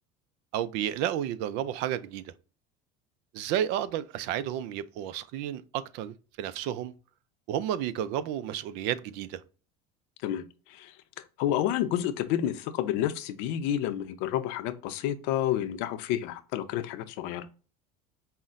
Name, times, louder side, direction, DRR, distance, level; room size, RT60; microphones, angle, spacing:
voice 1, 0.5-2.3 3.3-6.9 7.5-9.4, right 11 dB, 65° right, 0.4 m, -32 dB
voice 2, 10.2-11.0 11.4-17.5, left 11 dB, 70° left, 0.6 m, -30 dB
5.5 x 2.1 x 2.4 m
supercardioid pair, 105°, 19 cm